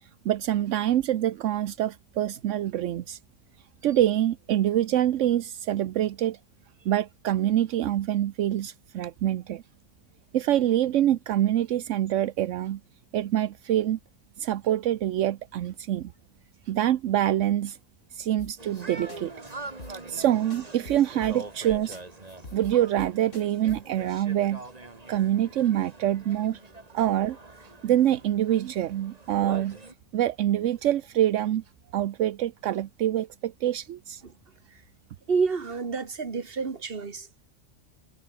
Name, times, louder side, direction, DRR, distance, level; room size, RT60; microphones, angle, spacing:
voice 1, 0.0-3.2 3.8-6.4 6.8-9.6 10.3-12.8 13.1-14.0 14.4-16.1 16.7-17.8 18.1-19.3 19.9-22.0 22.5-24.6 25.1-26.6 26.9-27.4 27.8-29.8 30.1-31.6 31.9-34.2, right 12 dB, 80° right, 1.0 m, -25 dB
sound 1, 18.4-18.8 19.1-19.2 19.5-19.6 19.8-20.2 20.5-21.7 21.9-22.0 22.3-24.0, left 3 dB, 85° left, 4.3 m, -44 dB
sound 2, 18.6-29.9, right 2 dB, 30° right, 2.3 m, -44 dB
voice 2, 35.3-37.3, right 5 dB, 50° right, 1.9 m, -28 dB
omnidirectional pair, 1.3 m